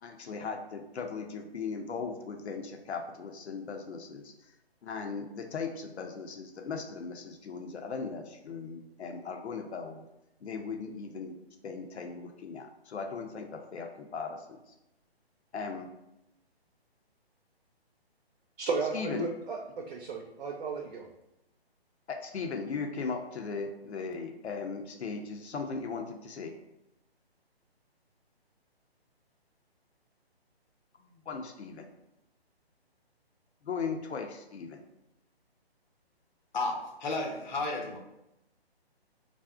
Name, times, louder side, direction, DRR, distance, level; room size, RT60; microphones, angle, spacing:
voice 1, 0.0-4.3 4.8-10.0 10.4-11.3 11.6-14.6 15.5-15.9 18.9-19.3 22.1-26.5 31.0-31.9 33.6-34.8, left 5 dB, 90° left, 3 dB, 0.5 m, -38 dB
voice 2, 18.6-21.1, right 3 dB, 60° right, 1 dB, 0.4 m, -34 dB
voice 3, 36.5-38.0, left 2 dB, 45° left, 1 dB, 0.6 m, -32 dB
2.5 x 2.0 x 3.5 m, 0.89 s
hypercardioid pair, 150°, 32 cm